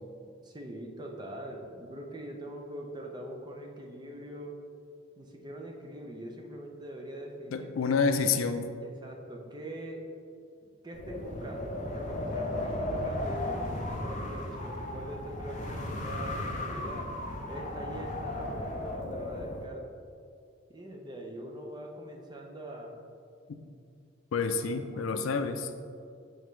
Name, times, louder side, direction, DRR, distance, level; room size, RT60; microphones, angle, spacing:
voice 1, 0.4-4.6 5.2-7.7 8.8-10.1 10.8-17.1 17.5-19.9 20.7-22.9 24.7-25.4, right 1 dB, 20° right, 1 dB, 0.6 m, -43 dB
voice 2, 7.5-8.7 23.5-23.6 24.3-25.7, left 5 dB, 85° left, 8 dB, 0.4 m, -28 dB
Wind, 10.9-19.6, left 1 dB, 40° left, 0.7 m, -35 dB
8.0 x 3.9 x 3.2 m, 2.4 s
head